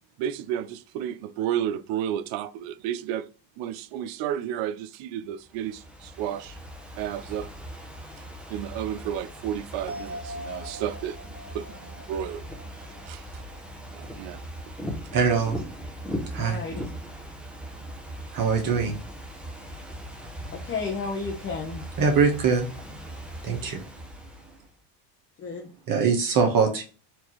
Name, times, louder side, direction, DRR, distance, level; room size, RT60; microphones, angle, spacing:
voice 1, 0.2-3.3 3.6-6.6 7.0-7.5 8.5-12.5 12.7-13.3 13.9-14.4, right 10 dB, 65° right, 0.6 m, -32 dB
Ocean / Fireworks, 5.4-24.7, equal, ahead, 0.8 m, -39 dB
sound 1, 9.9-13.6 13.9-14.0, equal, 55° left, 1.5 m, -42 dB
voice 2, 15.1-15.6 16.3-16.6 18.3-19.0 22.0-22.7 23.4-23.8 25.9-26.8, right 5 dB, 45° right, 1.0 m, -22 dB
voice 3, 16.4-16.9 20.5-21.9 25.4-25.7, left 4 dB, 25° left, 0.8 m, -32 dB
4.5 x 2.6 x 2.9 m
supercardioid pair, 105°, 49 cm